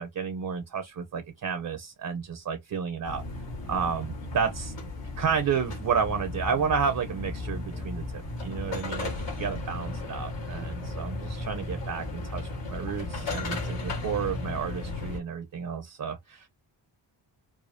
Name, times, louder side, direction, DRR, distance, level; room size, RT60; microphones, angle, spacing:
voice 1, 0.0-3.2 3.7-4.7 5.2-16.5, right 6 dB, 50° right, 0.7 m, -31 dB
sound 1, 3.0-15.2, left 2 dB, 85° left, 2.2 m, -35 dB
4.9 x 2.3 x 2.6 m
wide cardioid pair, 110°, 43 cm